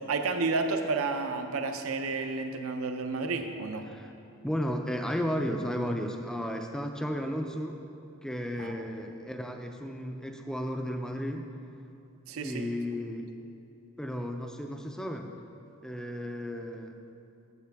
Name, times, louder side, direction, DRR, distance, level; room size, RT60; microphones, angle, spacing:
voice 1, 0.1-3.8 8.6-8.7 12.3-12.7, right 3 dB, 70° right, 6 dB, 0.6 m, -31 dB
voice 2, 4.4-7.8 8.2-11.5 12.3-13.3 14.0-15.3 15.8-17.0, equal, 5° left, 4 dB, 0.3 m, -34 dB
8.3 x 7.7 x 3.4 m, 2.7 s
head